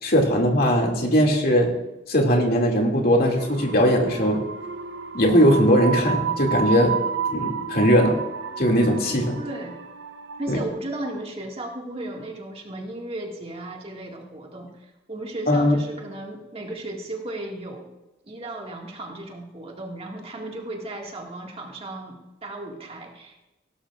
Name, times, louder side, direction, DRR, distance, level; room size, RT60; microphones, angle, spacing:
voice 1, 0.0-1.7 2.1-4.4 5.1-6.9 7.3-8.2 8.6-9.4 10.5-10.6 15.5-15.8, equal, 55° left, 1 dB, 2.4 m, -19 dB
sound 1, 3.4-10.7, right 6 dB, 75° right, 0.8 m, -31 dB
voice 2, 9.4-9.8 10.4-17.9 18.3-23.5, right 1 dB, 35° right, 0 dB, 2.0 m, -35 dB
17.0 x 12.5 x 2.5 m, 1.0 s
head